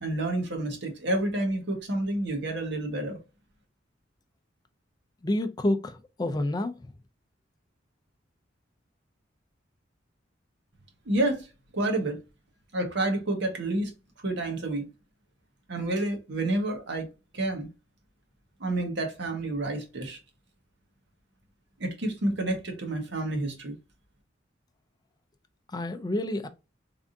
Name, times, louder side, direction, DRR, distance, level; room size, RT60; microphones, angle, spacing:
voice 1, 0.0-3.2 11.1-11.5 11.7-12.2 12.7-13.9 14.2-14.9 15.7-17.1 17.3-17.7 18.6-20.2 21.8-23.7, right 1 dB, 65° right, 1.1 m, -29 dB
voice 2, 5.2-6.9 25.7-26.5, left 1 dB, 20° left, 0.4 m, -29 dB
3.4 x 2.6 x 2.5 m
head